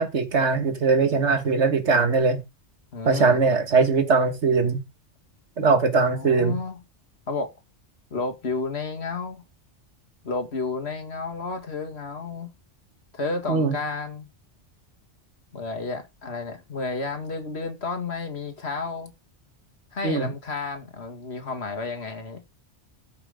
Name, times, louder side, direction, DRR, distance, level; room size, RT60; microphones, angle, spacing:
voice 1, 0.0-2.4 3.0-4.8 5.6-6.6 13.5-13.8 20.0-20.3, right 4 dB, 70° right, 1.8 m, -21 dB
voice 2, 2.9-3.4 5.9-6.8 7.3-7.5 8.1-9.4 10.2-12.5 13.1-14.3 15.5-19.1 19.9-22.4, left 3 dB, 65° left, 2.1 m, -31 dB
14.0 x 5.8 x 3.7 m
omnidirectional pair, 1.2 m